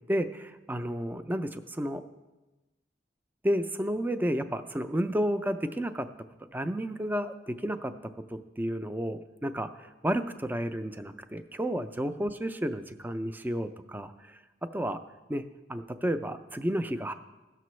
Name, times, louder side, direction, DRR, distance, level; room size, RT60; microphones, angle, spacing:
voice 1, 0.1-2.0 3.4-6.1 6.5-7.9 8.3-14.4 14.7-15.0 15.3-15.4 15.7-17.1, equal, 10° right, 10 dB, 0.4 m, -31 dB
16.5 x 6.7 x 3.1 m, 1.1 s
head